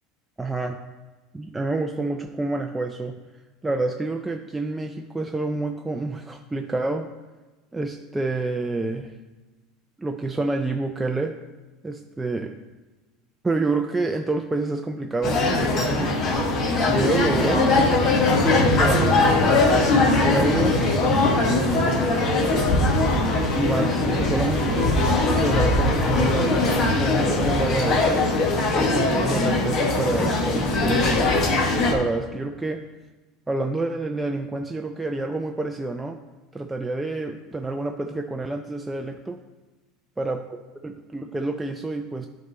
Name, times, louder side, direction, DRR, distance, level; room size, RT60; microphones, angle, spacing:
voice 1, 0.4-0.8 1.3-3.2 3.6-7.1 7.7-9.1 10.0-11.4 11.8-12.6 13.4-16.2 16.7-17.7 18.2-19.4 19.9-20.8 21.0-22.0 23.5-28.3 28.7-31.4 31.9-32.8 33.5-36.2 36.5-39.4 40.2-40.4 40.8-42.3, right 2 dB, 10° right, 4 dB, 0.3 m, -28 dB
sound 1, 15.2-31.9, left 2 dB, 40° left, 1.0 m, -21 dB
9.9 x 3.4 x 4.0 m, 1.2 s
supercardioid pair, 120°, 0 cm